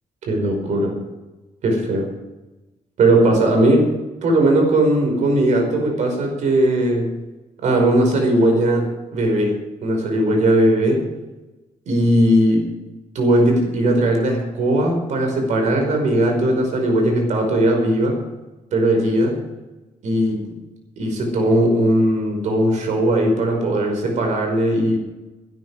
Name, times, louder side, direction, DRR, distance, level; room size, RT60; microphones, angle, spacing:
voice 1, 0.3-0.9 1.6-2.1 3.0-3.9 4.2-7.1 7.6-11.0 11.9-12.7 13.2-18.2 18.7-19.4 20.0-20.5 21.0-25.0, right 1 dB, 70° right, 2 dB, 5.3 m, -18 dB
17.0 x 12.5 x 4.9 m, 1.1 s
cardioid pair, 120°, 13 cm